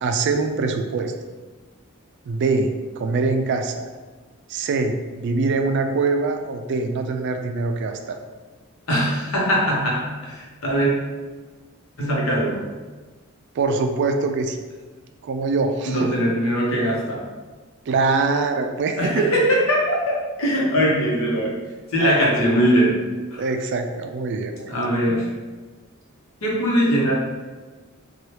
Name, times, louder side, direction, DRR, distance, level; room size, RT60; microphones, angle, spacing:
voice 1, 0.0-1.1 2.3-2.7 3.0-3.9 4.5-8.0 13.6-14.6 15.2-16.1 17.9-19.0 22.0-22.3 23.4-24.7, right 3 dB, 55° right, 5 dB, 0.3 m, -23 dB
voice 2, 8.9-10.9 12.0-12.6 15.8-17.2 19.0-21.6 21.9-23.0 23.3-23.4 24.7-25.3 26.4-27.1, equal, 75° left, -4 dB, 0.9 m, -21 dB
2.8 x 2.3 x 3.1 m, 1.3 s
head